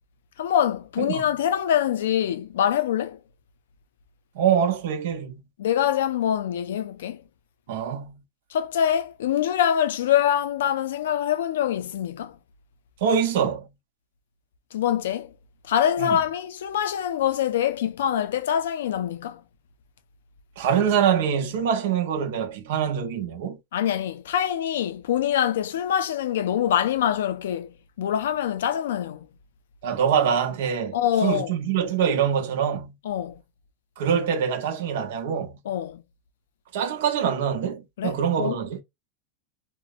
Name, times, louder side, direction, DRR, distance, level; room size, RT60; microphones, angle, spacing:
voice 1, 0.4-3.2 5.6-7.2 8.5-12.4 14.7-15.3 15.6-19.4 23.7-29.3 30.9-31.5 33.0-33.4 35.7-36.0 38.0-38.6, left 10 dB, 85° left, 0.3 m, -24 dB
voice 2, 1.0-1.3 4.3-5.4 7.7-8.2 13.0-13.7 16.0-16.2 20.6-23.6 29.8-33.0 34.0-35.6 36.7-38.8, right 8 dB, 75° right, 0.7 m, -24 dB
2.9 x 2.0 x 2.4 m
supercardioid pair, 125°, 0 cm